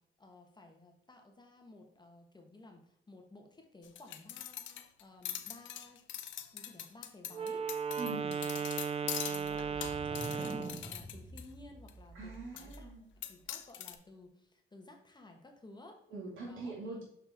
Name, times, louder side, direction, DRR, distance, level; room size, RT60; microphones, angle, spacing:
voice 1, 0.0-6.0 6.5-12.9 13.3-16.0 16.5-16.7, left 2 dB, 20° left, 3 dB, 1.3 m, -56 dB
sound 1, 3.8-11.4 11.9-12.0 12.6-12.8 13.2-13.9, left 10 dB, 70° left, 0.7 m, -43 dB
Wind instrument woodwind instrument, 7.3-10.9, right 6 dB, 30° right, 0.4 m, -36 dB
voice 2, 8.0-8.3 12.1-13.0 16.1-17.0, right 3 dB, 80° right, -3 dB, 2.3 m, -43 dB
sound 2, 9.4-13.1, equal, 5° right, 0.8 m, -47 dB
6.6 x 5.5 x 3.6 m, 0.72 s
cardioid pair, 90°, 20 cm